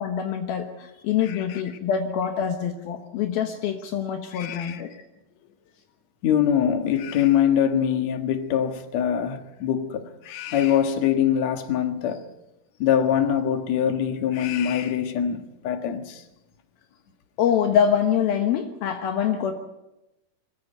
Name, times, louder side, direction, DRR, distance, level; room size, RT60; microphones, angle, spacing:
voice 1, 0.0-5.0 17.4-19.5, left 8 dB, 75° left, 3.0 m, -25 dB
voice 2, 1.2-1.6 4.3-4.8 6.2-12.2 12.8-16.2, left 9 dB, 55° left, 2.2 m, -23 dB
24.0 x 15.5 x 8.0 m
omnidirectional pair, 4.5 m